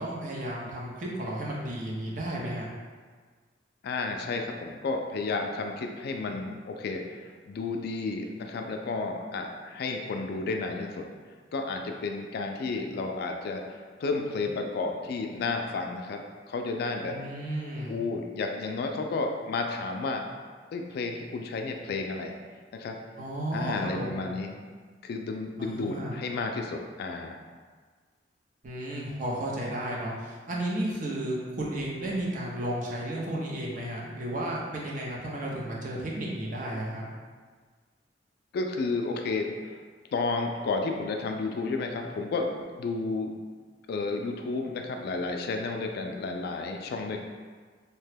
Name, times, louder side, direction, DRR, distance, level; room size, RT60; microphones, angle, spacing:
voice 1, 0.0-2.7 17.0-18.0 23.2-24.3 25.6-26.2 28.6-37.1, right 1 dB, 45° right, -4 dB, 0.6 m, -33 dB
voice 2, 3.8-11.1 11.5-17.2 17.9-20.2 20.7-22.4 22.7-22.9 23.5-24.5 25.0-27.4 38.5-39.5 40.1-42.5 42.8-43.3 43.9-47.2, left 3 dB, 60° left, 4 dB, 0.3 m, -32 dB
2.8 x 2.2 x 3.3 m, 1.5 s
head